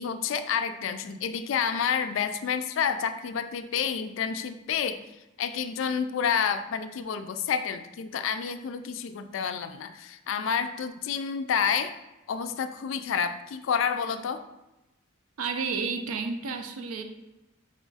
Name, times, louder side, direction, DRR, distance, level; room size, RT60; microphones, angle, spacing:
voice 1, 0.0-5.0 5.4-11.9 12.3-14.4, left 7 dB, 60° left, 9 dB, 0.3 m, -29 dB
voice 2, 15.4-17.0, right 5 dB, 85° right, 6 dB, 0.5 m, -31 dB
5.4 x 2.4 x 3.9 m, 0.97 s
head